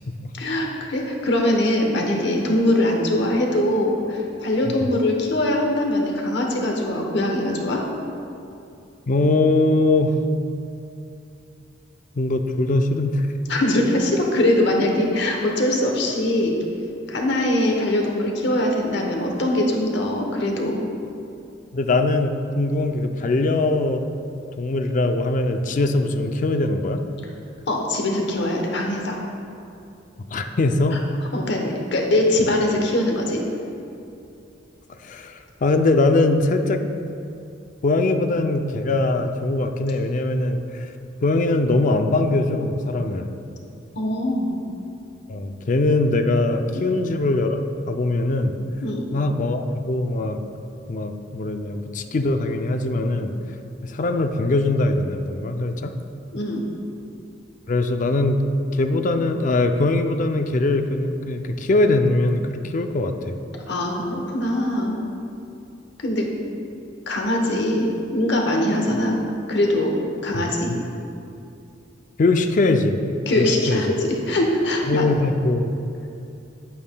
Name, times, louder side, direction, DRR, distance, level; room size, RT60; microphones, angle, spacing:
voice 1, 0.3-7.8 13.5-16.6 17.1-20.8 27.7-29.2 31.3-33.4 43.9-44.6 48.8-49.0 56.3-56.6 63.7-65.0 66.0-66.3 67.1-69.2 69.5-70.7 73.3-75.1, left 1 dB, 65° left, 1 dB, 1.0 m, -22 dB
voice 2, 9.1-10.2 12.2-13.3 21.7-24.1 24.6-27.0 30.3-31.0 34.9-36.8 37.8-40.9 41.2-43.3 45.3-48.6 49.1-50.4 50.9-53.3 53.8-55.9 57.7-58.4 58.7-63.3 70.3-70.5 72.2-73.0 73.4-73.8 74.9-75.7, left 2 dB, 45° left, 7 dB, 0.4 m, -21 dB
9.2 x 8.5 x 2.2 m, 2.6 s
head